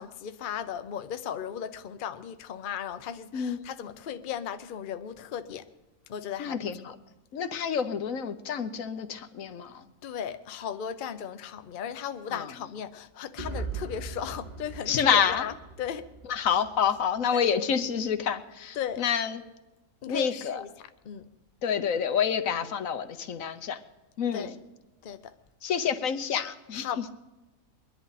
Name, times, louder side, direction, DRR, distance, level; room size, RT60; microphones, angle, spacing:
voice 1, 0.0-5.7 6.1-6.6 10.0-15.5 15.8-16.1 17.3-17.4 18.8-19.0 20.0-20.7 21.0-21.3 24.3-24.5 25.0-25.3 26.7-27.1, left 8 dB, 50° left, 0.7 m, -36 dB
voice 2, 6.4-6.9 7.3-9.8 12.3-12.5 14.9-15.5 16.3-19.4 20.1-20.6 21.6-23.8 24.2-24.6 25.6-27.0, left 7 dB, 80° left, 1.3 m, -28 dB
sound 1, 13.4-17.3, right 4 dB, 35° right, 1.2 m, -40 dB
22.5 x 11.0 x 4.1 m
omnidirectional pair, 1.4 m